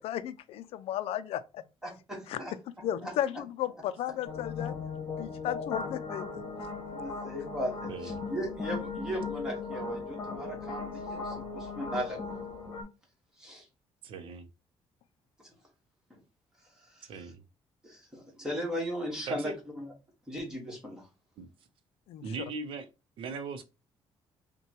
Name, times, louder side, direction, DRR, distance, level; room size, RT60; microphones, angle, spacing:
voice 1, 0.0-1.6 2.3-2.4 2.8-4.7 5.2-6.3 22.1-22.4, left 11 dB, 75° left, 0.4 m, -34 dB
voice 2, 1.8-2.5 3.0-3.1 6.9-12.3 13.4-13.7 15.4-15.5 16.1-16.2 16.8-17.3 17.8-19.9 20.3-21.1, equal, 5° right, 1.4 m, -37 dB
sound 1, 4.2-12.8, left 4 dB, 40° left, 1.3 m, -38 dB
voice 3, 7.9-8.2 14.0-14.5 17.1-17.4 19.3-19.6 21.4-21.5 22.2-22.9 23.2-23.6, right 4 dB, 60° right, 0.6 m, -39 dB
5.5 x 2.2 x 2.9 m
cardioid pair, 165°, 10 cm